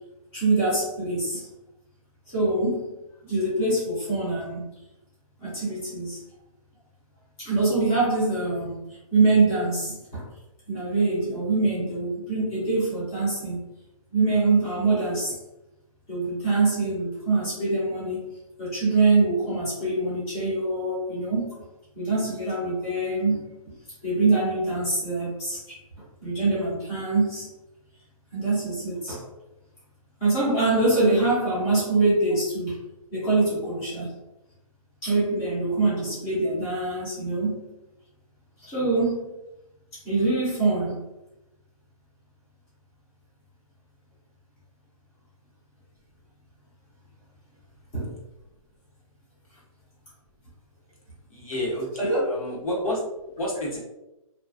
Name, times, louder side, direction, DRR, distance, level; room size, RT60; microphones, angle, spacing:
voice 1, 0.3-1.4 2.3-2.9 3.2-4.6 5.4-6.2 7.4-10.3 10.7-13.6 14.1-15.4 16.1-18.3 18.6-21.6 21.9-23.5 24.0-25.8 26.2-27.5 28.3-29.3 30.2-32.8 33.1-34.1 35.0-37.7 38.6-39.2 40.0-41.1 47.9-48.1 52.0-52.2, right 3 dB, 5° left, -9 dB, 0.3 m, -24 dB
voice 2, 51.3-53.0 53.4-53.8, left 1 dB, 75° left, -3 dB, 1.1 m, -30 dB
2.4 x 2.3 x 2.3 m, 0.93 s
hypercardioid pair, 170°, 18 cm